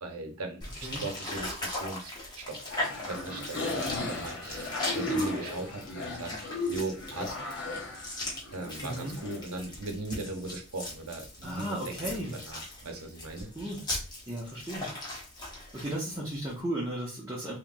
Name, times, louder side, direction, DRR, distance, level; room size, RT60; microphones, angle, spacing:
voice 1, 0.0-2.6 3.1-6.3 6.7-7.4 8.5-13.5, right 2 dB, 80° right, 3 dB, 0.8 m, -39 dB
sound 1, 0.6-16.6, left 1 dB, 20° left, 0.8 m, -40 dB
sound 2, 2.7-9.4, left 2 dB, 50° left, 0.9 m, -35 dB
voice 2, 8.8-9.2 11.4-12.3 13.5-13.8 14.3-14.9 15.7-17.6, right 1 dB, 15° right, -5 dB, 0.7 m, -35 dB
3.5 x 2.9 x 2.6 m, 0.35 s
head